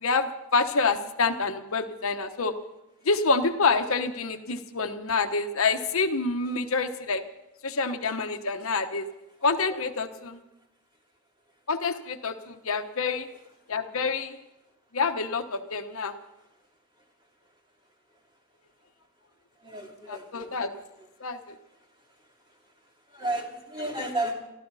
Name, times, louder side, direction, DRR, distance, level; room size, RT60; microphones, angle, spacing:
voice 1, 0.0-2.5 3.0-7.2 7.6-9.0 9.4-10.4 11.7-13.3 13.7-14.4 14.9-16.2 20.1-20.7 21.2-21.6, left 4 dB, 70° left, 7 dB, 1.1 m, -27 dB
voice 2, 19.6-20.6 23.1-24.3, right 1 dB, 20° right, 0 dB, 2.9 m, -32 dB
24.0 x 13.5 x 4.1 m, 0.93 s
head